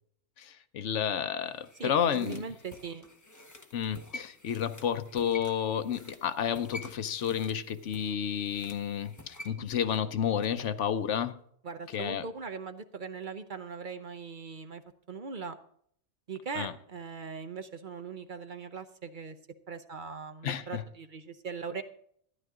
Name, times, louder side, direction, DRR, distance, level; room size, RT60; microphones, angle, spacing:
voice 1, 0.4-2.4 3.7-11.3 11.9-12.3 16.6-16.7 20.4-20.8, left 8 dB, 80° left, 1.1 m, -31 dB
sound 1, 1.4-10.8 11.1-11.2, left 2 dB, 15° left, 1.0 m, -49 dB
voice 2, 1.8-3.1 11.6-14.8 15.1-15.6 16.3-19.4 19.7-21.8, right 5 dB, 45° right, 0.9 m, -40 dB
13.0 x 11.0 x 3.7 m
omnidirectional pair, 1.2 m